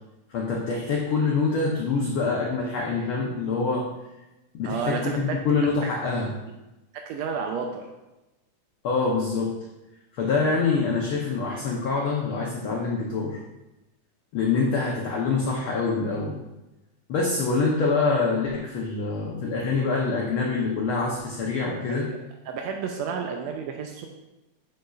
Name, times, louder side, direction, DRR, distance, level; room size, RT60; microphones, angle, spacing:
voice 1, 0.3-3.9 4.5-6.3 8.8-9.5 10.1-13.4 14.3-16.4 17.1-22.1, left 4 dB, 90° left, -3 dB, 1.1 m, -25 dB
voice 2, 4.6-5.4 7.1-7.9 17.3-17.5 21.7-21.8 22.5-24.1, right 6 dB, 85° right, 3 dB, 1.5 m, -31 dB
8.1 x 6.4 x 2.4 m, 1.0 s
omnidirectional pair, 3.6 m